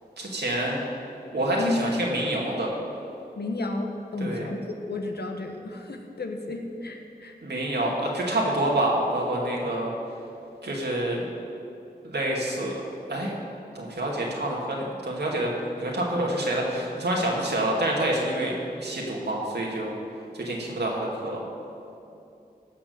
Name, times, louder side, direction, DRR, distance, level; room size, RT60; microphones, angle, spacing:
voice 1, 0.2-0.8 1.3-2.7 4.2-4.4 7.4-9.9 10.6-11.3 12.0-12.7 13.1-13.3 13.7-15.5 15.8-19.9 20.3-21.4, right 1 dB, 90° right, -2 dB, 2.2 m, -27 dB
voice 2, 3.3-7.4, left 2 dB, 80° left, 3 dB, 1.2 m, -32 dB
16.5 x 6.0 x 6.9 m, 2.7 s
cardioid pair, 45°, 17 cm